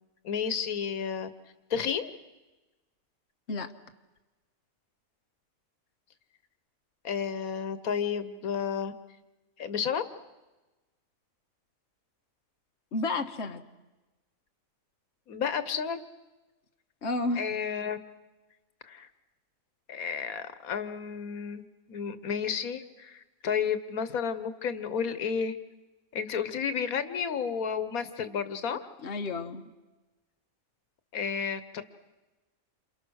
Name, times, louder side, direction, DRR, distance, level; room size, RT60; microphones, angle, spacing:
voice 1, 0.2-1.3 1.7-2.1 7.0-8.9 9.6-10.0 15.3-16.0 17.4-18.0 18.8-19.1 19.9-21.6 21.9-25.6 26.1-28.8 31.1-31.8, left 7 dB, 85° left, 12 dB, 1.5 m, -31 dB
voice 2, 12.9-13.6 17.0-17.4 28.7-29.6, left 3 dB, 55° left, 5 dB, 1.6 m, -32 dB
28.5 x 27.5 x 6.4 m, 1.1 s
omnidirectional pair, 1.5 m